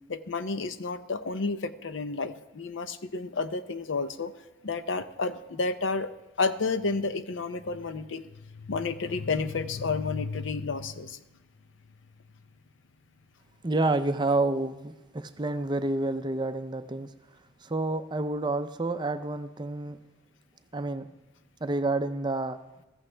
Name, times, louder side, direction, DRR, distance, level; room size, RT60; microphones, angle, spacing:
voice 1, 0.1-4.3 4.6-6.1 6.4-8.3 8.5-11.2, left 4 dB, 70° left, 11 dB, 0.6 m, -31 dB
voice 2, 13.6-17.1 17.6-20.0 20.7-21.1 21.6-22.6, right 2 dB, 20° right, 9 dB, 0.5 m, -29 dB
14.5 x 14.5 x 3.3 m, 1.0 s
head